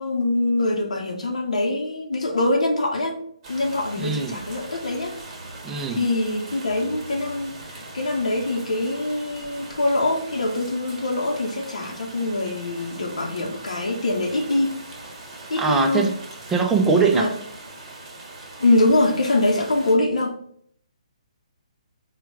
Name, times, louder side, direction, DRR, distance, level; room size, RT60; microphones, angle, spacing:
voice 1, 0.0-3.2 3.5-5.1 5.9-14.7 15.5-16.1 17.1-17.3 18.6-20.4, left 2 dB, 70° left, 1 dB, 0.8 m, -23 dB
sound 1, 3.4-20.0, right 2 dB, 40° right, 1.5 m, -41 dB
voice 2, 3.9-4.4 5.6-6.0 15.6-16.2 16.5-17.3, right 5 dB, 10° right, 3 dB, 0.5 m, -21 dB
4.3 x 2.3 x 4.6 m, 0.65 s
figure-of-eight pair, 135°, 4 cm